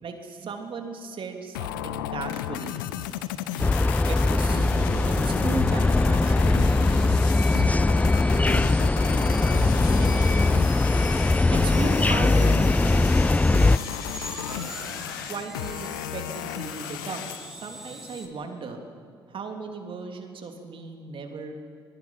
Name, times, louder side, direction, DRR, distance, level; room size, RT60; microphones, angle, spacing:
voice 1, 0.0-2.8 4.1-4.7 5.1-10.7 11.5-14.0 14.5-14.7 15.3-18.8 19.3-21.6, right 4 dB, 55° right, 4 dB, 3.2 m, -37 dB
sound 1, 1.5-17.5, left 13 dB, 85° left, 0.6 m, -34 dB
sound 2, 2.6-18.3, equal, 5° right, 4.5 m, -43 dB
sound 3, 3.6-13.8, left 2 dB, 15° left, 0.4 m, -21 dB
23.0 x 21.5 x 5.8 m, 2.3 s
hypercardioid pair, 45°, 11 cm